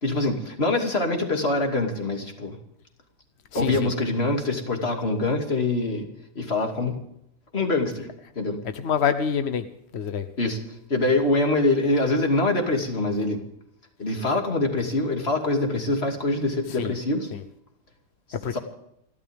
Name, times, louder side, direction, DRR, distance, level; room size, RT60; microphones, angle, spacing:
voice 1, 0.0-2.6 3.5-6.0 6.3-7.0 7.5-8.1 8.4-8.6 10.4-10.6 10.9-13.4 14.0-17.3 18.5-18.6, left 2 dB, 30° left, 3 dB, 2.6 m, -24 dB
voice 2, 3.5-3.9 8.7-9.6 9.9-10.3 16.8-16.9 17.3-17.4 18.4-18.6, left 7 dB, 55° left, 10 dB, 0.7 m, -26 dB
29.5 x 12.5 x 3.6 m, 0.78 s
omnidirectional pair, 2.3 m